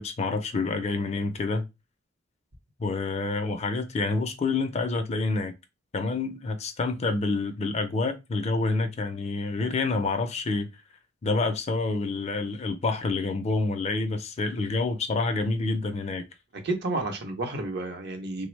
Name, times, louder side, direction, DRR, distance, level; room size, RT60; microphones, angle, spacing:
voice 1, 0.0-1.6 2.8-5.5 5.9-10.7 11.2-16.2, left 3 dB, 35° left, 0.4 m, -28 dB
voice 2, 16.5-18.5, right 2 dB, 55° right, 0.7 m, -31 dB
3.3 x 2.0 x 3.1 m
head